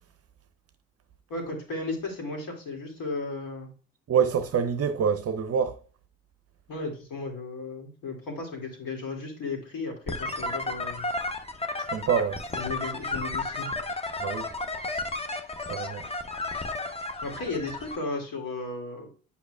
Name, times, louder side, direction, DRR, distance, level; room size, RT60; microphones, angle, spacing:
voice 1, 1.3-3.7 6.7-11.1 12.5-13.7 17.2-19.1, left 3 dB, 55° left, 2.6 m, -35 dB
voice 2, 4.1-5.8 11.9-12.4 14.2-14.5 15.7-16.0, right 7 dB, 35° right, 0.8 m, -26 dB
sound 1, 10.1-18.0, left 2 dB, 15° left, 0.9 m, -33 dB
8.1 x 5.7 x 2.4 m
figure-of-eight pair, 50°, 40 cm